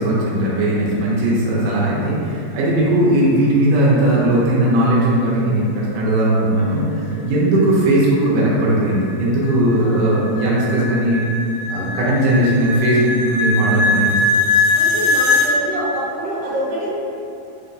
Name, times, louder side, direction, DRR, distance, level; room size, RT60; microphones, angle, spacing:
voice 1, 0.0-6.8 7.2-11.2 11.7-14.2, right 1 dB, 85° right, -7 dB, 2.3 m, -17 dB
voice 2, 0.9-1.3 6.5-7.2 9.8-10.2 14.7-16.9, right 1 dB, 60° right, -10 dB, 1.7 m, -27 dB
sound 1, 8.3-15.5, left 3 dB, 80° left, 1.9 m, -21 dB
5.3 x 2.1 x 2.5 m, 2.6 s
omnidirectional pair, 3.8 m